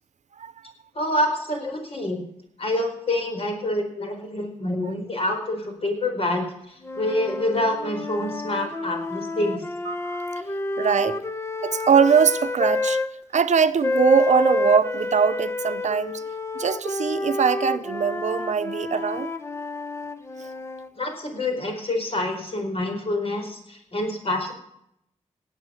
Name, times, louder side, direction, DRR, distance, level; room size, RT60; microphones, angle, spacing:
voice 1, 0.4-0.7 4.8-4.9 9.9-10.4 10.8-11.2 11.6-13.0 13.3-16.2 16.5-19.3 20.4-20.5, right 6 dB, 70° right, 0.6 m, -22 dB
voice 2, 0.9-2.2 2.6-9.6 21.0-24.5, left 1 dB, 50° left, 4.5 m, -27 dB
sound 1, 6.8-13.1 13.8-20.9, left 2 dB, 20° left, 0.9 m, -29 dB
17.5 x 8.6 x 6.4 m
wide cardioid pair, 105°, 12 cm